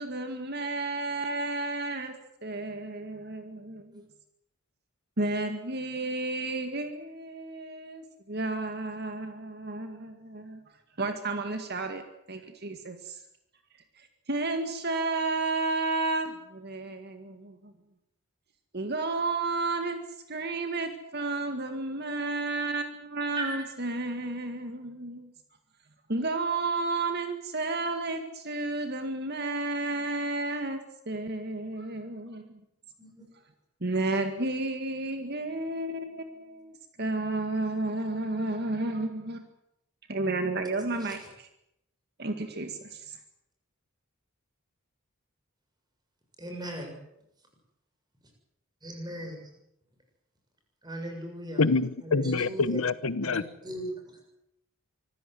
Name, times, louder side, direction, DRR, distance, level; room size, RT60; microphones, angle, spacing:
voice 1, 0.0-2.2 2.4-4.0 5.2-10.6 11.0-12.0 12.3-13.2 14.3-17.7 18.7-25.3 26.1-32.4 33.8-39.5 40.1-41.5 42.2-43.2, right 2 dB, 50° right, 7 dB, 2.0 m, -32 dB
voice 2, 46.4-46.9 48.8-49.4 50.8-51.7 52.0-52.8 53.2-54.2, right 1 dB, 20° right, 3 dB, 7.1 m, -38 dB
voice 3, 51.6-53.4, left 4 dB, 75° left, 16 dB, 1.0 m, -26 dB
25.5 x 15.0 x 9.3 m, 0.81 s
head